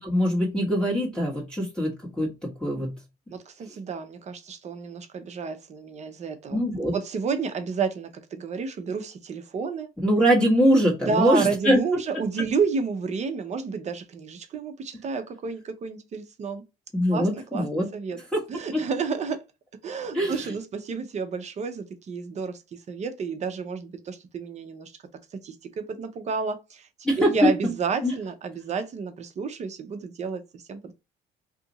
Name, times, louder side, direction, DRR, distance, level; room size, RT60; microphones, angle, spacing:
voice 1, 0.0-2.9 6.5-6.9 10.0-11.8 16.9-17.9 18.3-18.4 20.1-20.3 27.0-27.3 28.0-28.1, equal, 5° left, 1.5 m, -23 dB
voice 2, 3.3-6.6 6.9-9.9 11.0-16.6 17.1-18.2 18.5-19.4 19.8-24.9 25.4-30.9, right 5 dB, 40° right, 0.6 m, -30 dB
2.8 x 2.5 x 3.9 m
cardioid pair, 110°, 17 cm